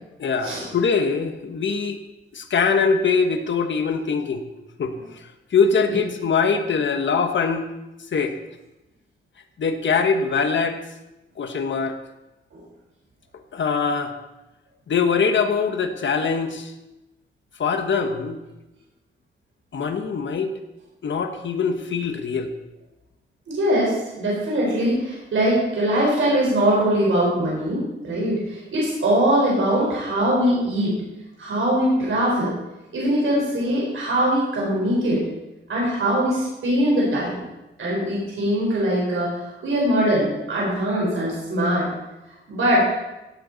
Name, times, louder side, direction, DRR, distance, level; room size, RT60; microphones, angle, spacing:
voice 1, 0.2-2.0 2.3-4.4 4.8-4.9 5.5-7.7 8.1-8.3 9.6-10.8 11.4-12.0 13.5-14.1 14.9-16.7 17.6-18.4 19.7-20.5 21.0-22.5, left 5 dB, 70° left, 7 dB, 1.3 m, -22 dB
voice 2, 23.5-30.9 31.4-32.5 32.9-35.2 35.7-37.4 37.8-41.9 42.5-42.9, right 1 dB, 90° right, -5 dB, 4.5 m, -22 dB
17.0 x 9.0 x 4.1 m, 1.0 s
wide cardioid pair, 100°, 20 cm